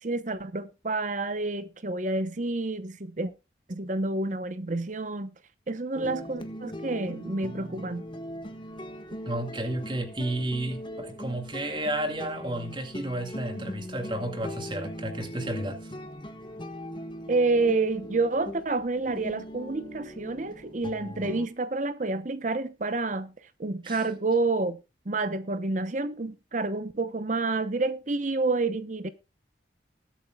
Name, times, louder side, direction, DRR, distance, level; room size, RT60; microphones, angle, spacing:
voice 1, 0.0-3.3 3.7-5.4 5.7-8.1 17.3-23.3 23.6-24.8 25.1-29.1, right 3 dB, 45° right, 0.9 m, -29 dB
sound 1, 5.9-21.5, equal, 25° left, 1.4 m, -40 dB
voice 2, 9.3-15.8 23.8-24.0, right 1 dB, 25° right, 2.2 m, -32 dB
20.5 x 8.6 x 2.3 m
head